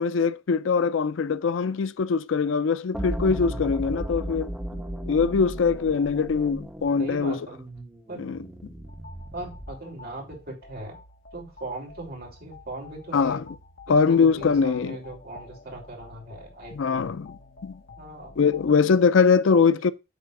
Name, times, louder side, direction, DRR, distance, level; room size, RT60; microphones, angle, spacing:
voice 1, 0.0-4.5 5.1-7.4 8.2-8.4 13.1-13.4 13.9-15.0 16.8-17.3 17.6-17.7 18.4-19.9, left 5 dB, 75° left, 0.4 m, -22 dB
sound 1, 2.9-9.9, right 1 dB, 5° right, 1.7 m, -35 dB
voice 2, 7.0-7.6 8.1-8.4 9.3-11.0 11.3-13.4 13.9-17.1 18.0-18.3 19.5-19.9, right 2 dB, 50° right, 3.4 m, -39 dB
sound 2, 8.9-18.8, left 3 dB, 55° left, 1.2 m, -49 dB
8.6 x 3.4 x 6.3 m
head